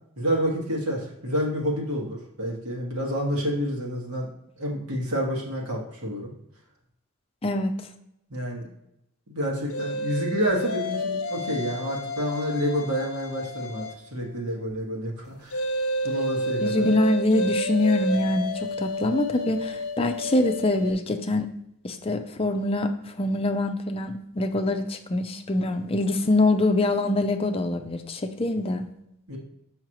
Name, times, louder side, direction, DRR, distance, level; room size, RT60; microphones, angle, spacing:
voice 1, 0.2-4.3 4.6-6.3 8.3-8.7 9.3-15.6 16.0-16.9 29.3-29.4, equal, 85° right, -1 dB, 1.7 m, -29 dB
sound 1, 9.7-14.1 15.5-20.9, equal, 70° left, 0.6 m, -30 dB
voice 2, 16.6-21.5 21.8-28.8, left 2 dB, 25° left, 6 dB, 0.5 m, -24 dB
6.5 x 5.6 x 3.0 m, 0.81 s
head